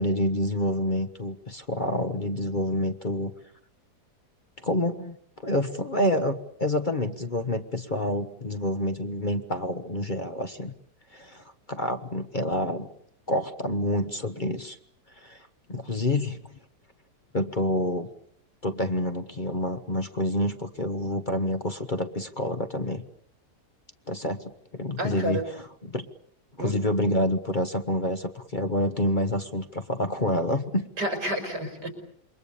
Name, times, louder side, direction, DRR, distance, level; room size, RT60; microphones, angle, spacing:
voice 1, 0.0-3.3 4.6-5.2 5.4-10.7 11.1-12.9 13.3-14.8 15.2-16.4 17.3-18.1 18.6-23.0 24.1-26.1 26.6-30.9, left 1 dB, 30° left, 8 dB, 1.2 m, -28 dB
voice 2, 25.0-25.4 26.6-26.8 31.0-31.9, right 1 dB, 80° right, 5 dB, 5.4 m, -30 dB
28.0 x 23.5 x 7.0 m, 0.68 s
omnidirectional pair, 1.8 m